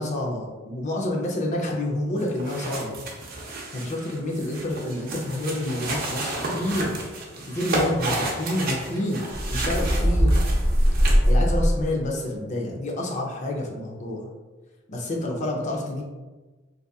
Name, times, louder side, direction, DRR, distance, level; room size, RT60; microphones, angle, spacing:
voice 1, 0.0-2.9 3.7-6.9 7.5-9.2 9.5-10.3 11.2-14.3 14.9-16.0, left 1 dB, 40° left, -1 dB, 0.4 m, -28 dB
sound 1, 2.2-11.3, right 2 dB, 50° right, 0.5 m, -32 dB
sound 2, 9.3-12.1, equal, 90° left, 0.9 m, -21 dB
2.6 x 2.4 x 2.3 m, 1.3 s
head